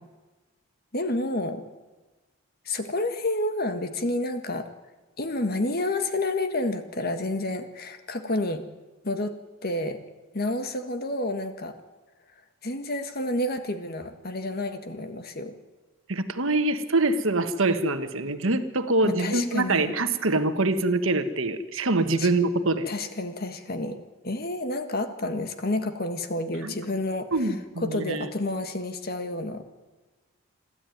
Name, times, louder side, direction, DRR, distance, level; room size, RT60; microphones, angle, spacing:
voice 1, 0.9-1.6 2.6-4.6 5.2-8.6 9.0-10.0 10.3-11.7 12.6-15.5 19.0-19.9 22.2-22.3 22.8-24.0 24.2-29.6, left 2 dB, 45° left, 8 dB, 1.6 m, -29 dB
voice 2, 16.1-22.9 26.6-26.8 27.3-28.3, right 2 dB, 70° right, 9 dB, 1.4 m, -25 dB
27.5 x 12.5 x 9.3 m, 1.3 s
head